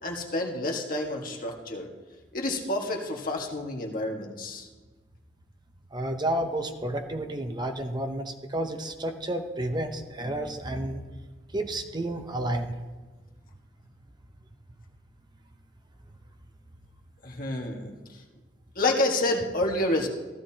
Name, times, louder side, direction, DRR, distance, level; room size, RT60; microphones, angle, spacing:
voice 1, 0.0-1.9 2.3-4.7 17.2-18.2 18.7-20.1, left 2 dB, 50° left, 1 dB, 1.6 m, -29 dB
voice 2, 5.9-11.0 11.5-12.8, right 1 dB, 25° right, 5 dB, 0.8 m, -31 dB
15.5 x 14.0 x 2.9 m, 1.3 s
head